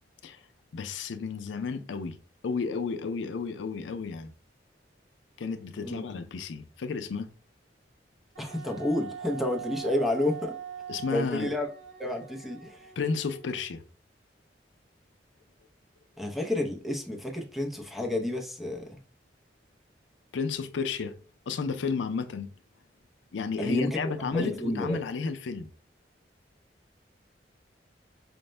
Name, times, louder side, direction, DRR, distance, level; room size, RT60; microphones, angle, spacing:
voice 1, 0.7-2.2 2.4-4.3 5.4-7.3 10.9-11.5 13.0-13.8 20.3-21.2 21.5-22.5 23.3-25.7, left 5 dB, 90° left, 0.4 m, -32 dB
voice 2, 5.7-6.0 8.4-10.5 11.1-11.7 12.0-12.9 16.2-19.0 23.6-24.0 24.3-25.0, left 1 dB, ahead, 0.5 m, -30 dB
Wind instrument woodwind instrument, 8.4-13.8, right 8 dB, 80° right, 0.9 m, -43 dB
5.1 x 2.1 x 3.2 m
head